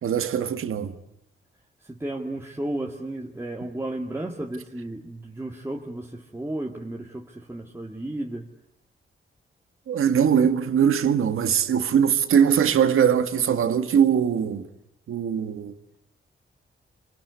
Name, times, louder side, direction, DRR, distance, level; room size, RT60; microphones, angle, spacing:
voice 1, 0.0-1.0 9.9-14.7 15.1-15.7, right 8 dB, 90° right, 1.7 m, -21 dB
voice 2, 1.8-8.5, right 1 dB, 10° right, 2.1 m, -33 dB
26.5 x 24.0 x 8.2 m
cardioid pair, 95°, 21 cm